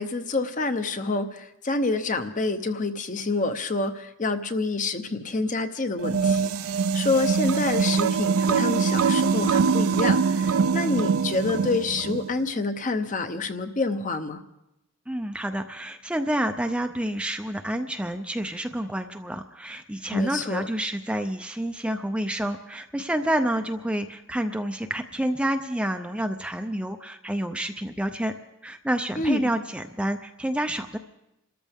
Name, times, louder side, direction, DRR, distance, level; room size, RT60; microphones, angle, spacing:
voice 1, 0.0-14.4 20.1-20.7 29.2-29.4, left 3 dB, 35° left, 9 dB, 0.8 m, -27 dB
sound 1, 6.0-12.3, right 5 dB, 70° right, 0.4 m, -23 dB
voice 2, 15.1-28.3 28.6-31.0, right 1 dB, 5° right, 6 dB, 0.5 m, -28 dB
27.5 x 13.5 x 3.5 m, 0.89 s
head